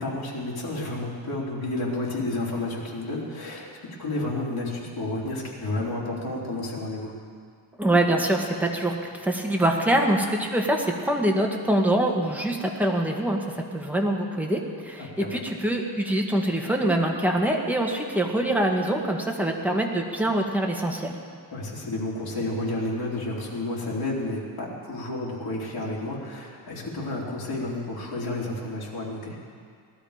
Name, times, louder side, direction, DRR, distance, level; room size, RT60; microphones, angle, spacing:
voice 1, 0.0-7.1 15.0-15.4 21.5-29.4, left 2 dB, 55° left, -5 dB, 3.7 m, -31 dB
voice 2, 7.8-21.1, right 1 dB, 5° right, 0 dB, 1.7 m, -24 dB
18.5 x 12.5 x 5.1 m, 2.1 s
cardioid pair, 125°, 44 cm